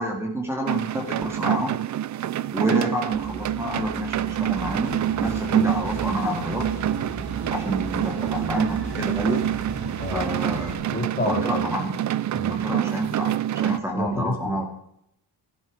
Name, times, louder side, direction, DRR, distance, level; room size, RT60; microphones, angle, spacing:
voice 1, 0.0-1.8 2.5-6.7 7.5-9.4 10.1-10.8 11.2-12.0 12.5-14.6, equal, 5° right, 2 dB, 2.4 m, -28 dB
sound 1, 0.7-13.8, right 12 dB, 45° right, 0.5 m, -27 dB
sound 2, 3.1-10.2, right 2 dB, 60° right, 4.4 m, -41 dB
sound 3, 4.6-10.7, right 3 dB, 90° right, 6.3 m, -35 dB
voice 2, 10.0-10.3 10.9-11.7 12.3-12.7 13.9-14.6, left 3 dB, 20° left, 2 dB, 2.9 m, -30 dB
16.5 x 11.5 x 5.1 m, 0.73 s
wide cardioid pair, 155°, 41 cm